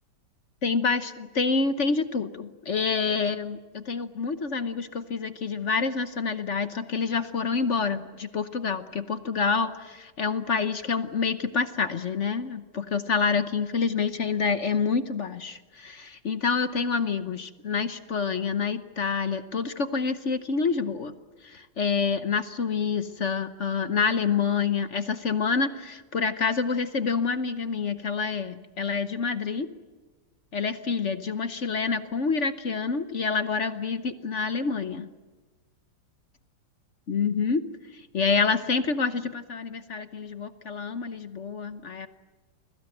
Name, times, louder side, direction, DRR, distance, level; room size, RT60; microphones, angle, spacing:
voice 1, 0.6-21.1 21.4-29.7 30.5-35.1 37.1-37.6 37.9-42.1, left 5 dB, 45° left, 11 dB, 1.0 m, -27 dB
29.5 x 22.0 x 7.8 m, 1.3 s
omnidirectional pair, 2.0 m